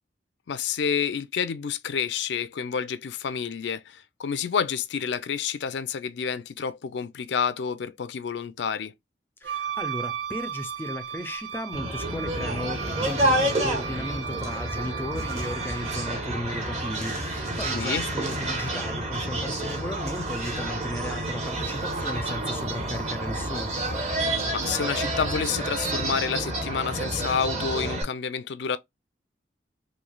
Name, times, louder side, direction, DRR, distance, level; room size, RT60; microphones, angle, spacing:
voice 1, 0.5-8.9 17.7-18.0 24.2-28.8, left 6 dB, 80° left, 0.4 m, -29 dB
voice 2, 9.4-23.7, left 1 dB, 10° left, 0.3 m, -35 dB
Wind instrument woodwind instrument, 9.4-16.2, right 8 dB, 90° right, 0.4 m, -35 dB
sound 1, 11.7-28.0, right 1 dB, 35° right, 0.9 m, -29 dB
3.1 x 2.7 x 2.2 m
head